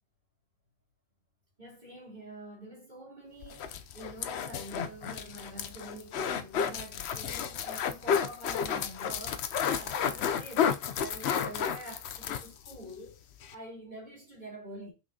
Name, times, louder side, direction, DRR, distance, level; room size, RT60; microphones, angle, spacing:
voice 1, 1.6-9.5 9.7-13.2 13.5-14.9, right 1 dB, 35° right, 3.4 m, -46 dB
sound 1, 3.4-12.8 13.1-13.2 13.4-13.5, left 8 dB, 65° left, 0.8 m, -32 dB
6.0 x 5.8 x 2.7 m
omnidirectional pair, 1.3 m